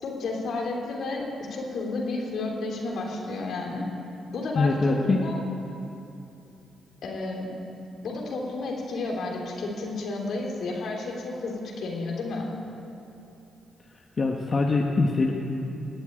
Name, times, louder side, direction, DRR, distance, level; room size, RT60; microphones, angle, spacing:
voice 1, 0.0-3.9 4.3-5.4 7.0-7.5 8.0-12.5, left 3 dB, 70° left, -1 dB, 3.2 m, -31 dB
voice 2, 4.5-5.2 14.2-15.3, left 3 dB, 45° left, 0 dB, 1.4 m, -23 dB
19.0 x 8.4 x 8.9 m, 2.8 s
supercardioid pair, 55°, 0 cm